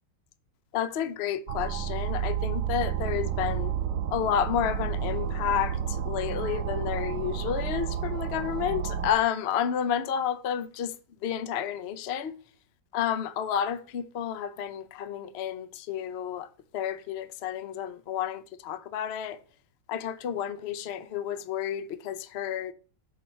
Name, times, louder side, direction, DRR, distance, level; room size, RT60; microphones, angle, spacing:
voice 1, 0.7-3.7 4.1-10.9 11.2-12.3 12.9-16.5 16.7-19.4 19.9-22.7, left 9 dB, 60° left, 0.6 m, -30 dB
sound 1, 1.5-9.1, right 8 dB, 90° right, 1.4 m, -31 dB
7.1 x 4.3 x 5.7 m
omnidirectional pair, 1.9 m